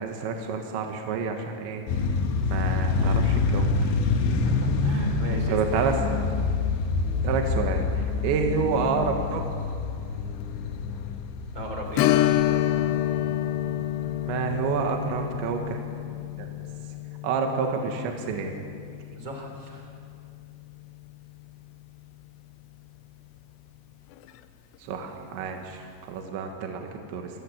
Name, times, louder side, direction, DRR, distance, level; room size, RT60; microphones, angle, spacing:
voice 1, 0.0-1.8 2.4-4.0 5.5-5.9 7.2-9.4 14.2-15.8 16.4-16.5 17.2-18.6 24.9-27.3, right 5 dB, 70° right, 3 dB, 3.5 m, -29 dB
sound 1, 1.9-15.0, left 4 dB, 70° left, 3.0 m, -27 dB
voice 2, 4.2-5.6 11.5-12.1 19.2-19.9, equal, 30° right, 2 dB, 3.0 m, -34 dB
Strum, 12.0-21.2 21.5-21.6 24.1-24.3 24.7-24.8, left 13 dB, 85° left, 2.4 m, -29 dB
27.5 x 13.5 x 8.5 m, 2.4 s
omnidirectional pair, 5.7 m